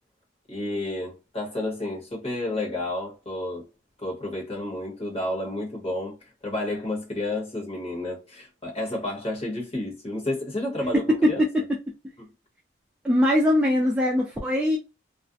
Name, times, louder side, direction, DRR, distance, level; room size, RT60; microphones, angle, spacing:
voice 1, 0.5-3.7 4.0-6.2 6.4-11.4 12.2-12.3, left 1 dB, 30° left, 1.1 m, -31 dB
voice 2, 13.0-14.8, left 1 dB, 5° right, 0.3 m, -21 dB
2.4 x 2.1 x 2.5 m
head